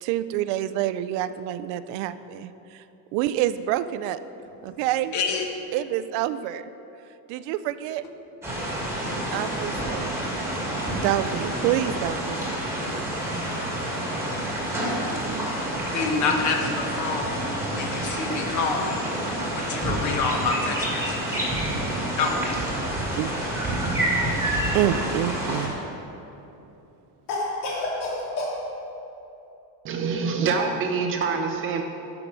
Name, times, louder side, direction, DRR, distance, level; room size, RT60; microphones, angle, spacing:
voice 1, 0.0-2.5 3.1-4.2 4.6-5.1 5.7-6.6 7.3-8.0 9.3-10.3 10.9-12.4 23.1-23.3 24.7-25.7, right 12 dB, 85° right, 13 dB, 0.6 m, -27 dB
voice 2, 5.1-5.5 15.9-19.0 19.5-21.4 22.2-22.6, left 4 dB, 45° left, 3 dB, 1.2 m, -27 dB
sound 1, 8.4-25.7, right 1 dB, 5° right, 1.5 m, -28 dB
Cough, 25.0-25.8 27.3-28.6, left 2 dB, 65° left, 2.5 m, -30 dB
voice 3, 29.8-31.8, right 5 dB, 30° right, 4 dB, 0.5 m, -25 dB
13.0 x 5.9 x 5.3 m, 2.9 s
cardioid pair, 180°, 42 cm